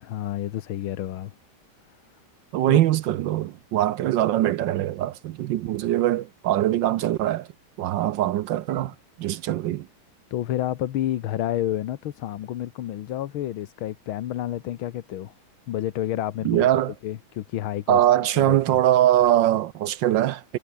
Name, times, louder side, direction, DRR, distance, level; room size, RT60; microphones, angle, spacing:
voice 1, 0.0-1.3 2.7-2.8 9.3-9.4 10.3-15.3 15.7-16.7 17.0-18.0 18.3-18.8, left 12 dB, 80° left, 1.8 m, -30 dB
voice 2, 2.5-7.5 7.8-8.9 9.2-9.9 16.4-16.9 17.9-20.6, right 13 dB, 75° right, 1.3 m, -22 dB
omnidirectional pair, 2.2 m